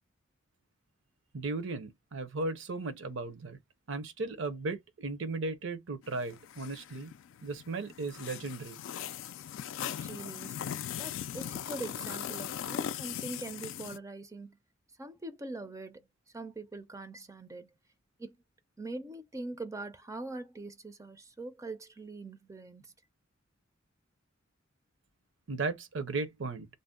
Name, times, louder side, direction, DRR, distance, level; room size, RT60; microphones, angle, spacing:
voice 1, 1.3-3.6 3.9-7.1 7.4-8.8 25.5-26.7, right 3 dB, 65° right, 0.7 m, -36 dB
sound 1, 6.0-14.0, left 9 dB, 70° left, 0.3 m, -39 dB
voice 2, 9.8-10.6 11.0-14.6 15.0-16.0 16.3-17.7 18.2-18.4 18.8-22.9, right 2 dB, 15° right, 0.4 m, -42 dB
2.5 x 2.1 x 3.6 m
head